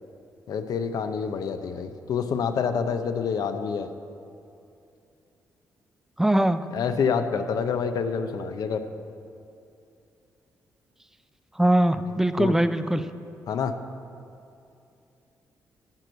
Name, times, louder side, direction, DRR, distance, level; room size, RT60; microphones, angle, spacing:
voice 1, 0.5-3.9 6.7-8.8 12.1-12.6 13.5-13.7, left 6 dB, 70° left, 9 dB, 0.6 m, -27 dB
voice 2, 6.2-6.6 11.6-13.0, right 1 dB, 5° right, 11 dB, 0.4 m, -21 dB
11.5 x 4.5 x 7.9 m, 2.6 s
cardioid pair, 85°, 7 cm